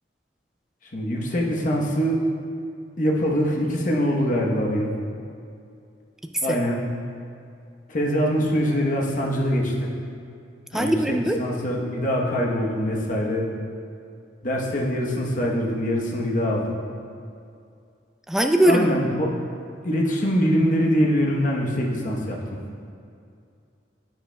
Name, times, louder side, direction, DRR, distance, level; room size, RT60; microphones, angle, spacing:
voice 1, 0.9-2.3 3.0-4.9 6.4-6.8 7.9-9.9 10.7-13.5 14.4-16.8 18.6-19.4 19.8-22.6, equal, 45° left, -2 dB, 1.0 m, -23 dB
voice 2, 10.7-11.4 18.3-18.9, right 1 dB, ahead, 4 dB, 0.3 m, -20 dB
10.5 x 7.7 x 2.2 m, 2.4 s
head